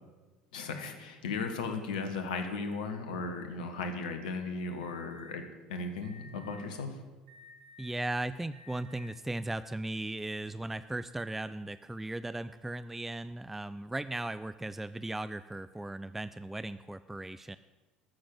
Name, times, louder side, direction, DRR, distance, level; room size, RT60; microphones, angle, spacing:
voice 1, 0.5-5.4 5.7-7.0, left 4 dB, 65° left, 7 dB, 1.5 m, -36 dB
Alarm, 4.8-5.3 6.0-6.6 7.3-7.9 8.5-9.1, left 3 dB, 80° right, 2.1 m, -54 dB
voice 2, 7.8-17.6, right 2 dB, 5° right, 13 dB, 0.3 m, -37 dB
14.0 x 6.8 x 7.8 m, 1.2 s
figure-of-eight pair, 70°, 4 cm